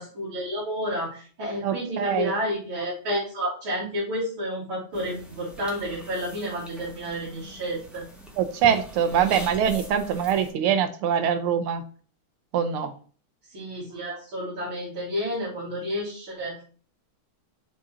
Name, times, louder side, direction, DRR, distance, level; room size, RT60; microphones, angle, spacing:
voice 1, 0.0-8.0 13.5-16.6, equal, 65° right, -10 dB, 3.9 m, -30 dB
voice 2, 1.6-2.3 8.4-11.8 12.5-12.9, right 8 dB, 85° right, 8 dB, 1.7 m, -23 dB
sound 1, 4.9-10.5, equal, ahead, 0.7 m, -42 dB
6.5 x 3.8 x 4.3 m, 0.42 s
omnidirectional pair, 2.3 m